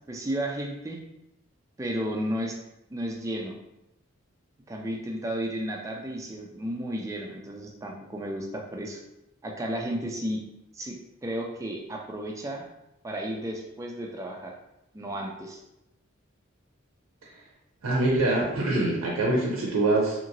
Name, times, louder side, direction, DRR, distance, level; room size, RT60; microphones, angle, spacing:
voice 1, 0.1-1.0 1.8-2.6 2.9-3.6 4.7-9.0 9.4-10.4 10.7-11.0 11.2-12.6 13.0-14.5 14.9-15.6, right 1 dB, 15° right, 0 dB, 0.3 m, -33 dB
voice 2, 17.8-20.2, right 2 dB, 80° right, -2 dB, 0.5 m, -24 dB
2.8 x 2.7 x 2.6 m, 0.89 s
head